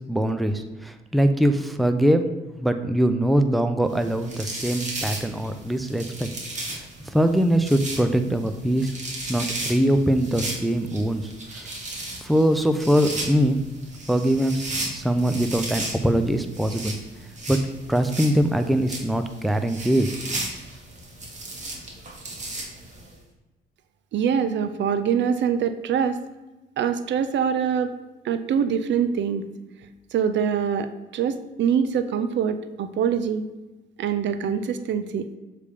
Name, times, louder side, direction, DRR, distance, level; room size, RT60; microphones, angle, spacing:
voice 1, 0.0-2.3 2.6-6.3 6.7-8.9 9.3-11.7 12.2-13.6 14.1-16.9 17.5-17.6 17.9-20.1, right 1 dB, ahead, 8 dB, 0.4 m, -22 dB
sound 1, 3.9-23.1, right 2 dB, 35° right, 1.6 m, -35 dB
voice 2, 24.1-26.2 26.8-27.9 28.2-29.4 30.1-33.4 34.0-35.3, right 7 dB, 65° right, 10 dB, 0.5 m, -24 dB
6.7 x 3.4 x 5.0 m, 1.1 s
cardioid pair, 90°, 20 cm